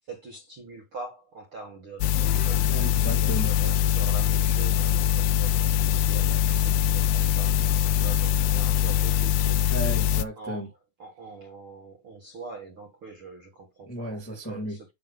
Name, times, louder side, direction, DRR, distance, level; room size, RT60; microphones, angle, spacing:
voice 1, 0.1-2.7 3.1-9.7 10.4-14.9, right 3 dB, 45° right, 1.9 m, -43 dB
sound 1, 2.0-10.2, left 10 dB, 80° left, 2.0 m, -23 dB
sound 2, 2.1-4.0, left 6 dB, 55° left, 2.0 m, -44 dB
voice 2, 2.7-3.5 9.7-10.7 13.9-14.8, right 1 dB, 5° left, 1.7 m, -34 dB
9.5 x 3.2 x 5.3 m
omnidirectional pair, 4.4 m